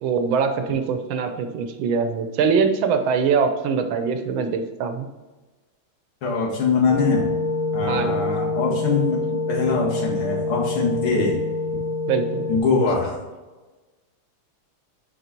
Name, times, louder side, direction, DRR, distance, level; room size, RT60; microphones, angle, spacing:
voice 1, 0.0-5.1 7.9-8.3 12.1-12.5, right 5 dB, 75° right, 7 dB, 1.4 m, -23 dB
voice 2, 6.2-7.3 7.7-9.2 9.5-11.4 12.5-13.2, left 4 dB, 90° left, -3 dB, 2.6 m, -22 dB
sound 1, 6.9-12.6, left 3 dB, 65° left, 1.1 m, -26 dB
6.7 x 4.6 x 4.4 m, 1.2 s
omnidirectional pair, 2.3 m